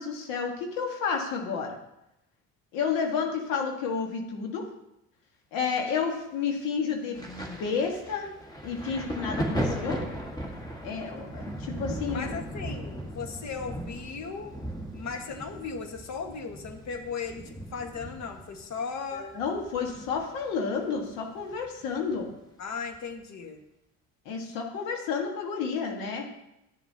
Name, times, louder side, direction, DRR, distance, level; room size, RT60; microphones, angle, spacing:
voice 1, 0.0-1.8 2.7-4.7 5.5-8.3 8.6-10.0 10.8-12.3 19.1-22.3 24.2-26.3, left 5 dB, 80° left, 1 dB, 1.7 m, -31 dB
Thunder, 7.1-20.5 20.8-22.1 22.9-23.1, equal, 10° left, 1.7 m, -37 dB
voice 2, 12.1-14.6 14.9-19.3 22.6-23.6, left 5 dB, 55° left, 5 dB, 1.6 m, -37 dB
12.5 x 7.2 x 2.8 m, 0.88 s
supercardioid pair, 80°, 33 cm